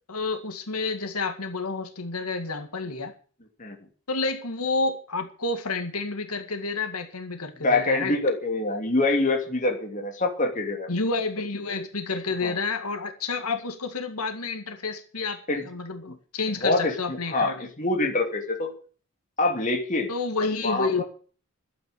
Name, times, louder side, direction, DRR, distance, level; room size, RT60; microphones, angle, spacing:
voice 1, 0.1-3.1 4.1-8.2 10.9-15.4 15.6-17.7 20.1-21.0, left 3 dB, 85° left, 2.1 m, -29 dB
voice 2, 7.6-10.9 12.4-12.5 15.5-15.6 16.6-18.7 19.4-20.1 20.6-21.0, left 2 dB, 35° left, 2.8 m, -25 dB
12.0 x 9.4 x 8.4 m
head